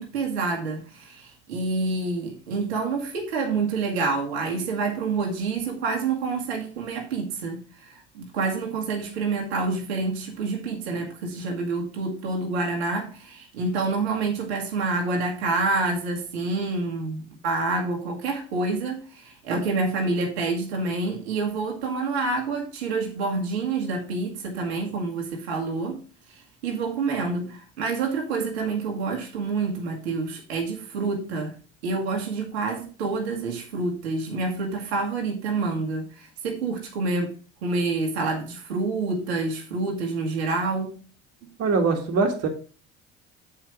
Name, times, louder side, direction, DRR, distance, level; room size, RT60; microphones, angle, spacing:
voice 1, 0.0-26.0 26.6-31.5 31.8-37.3 37.6-40.9, right 3 dB, 80° right, 1.6 m, -28 dB
voice 2, 41.6-42.5, right 4 dB, 50° right, 1.8 m, -22 dB
7.1 x 4.9 x 5.0 m
hypercardioid pair, 65°, 32 cm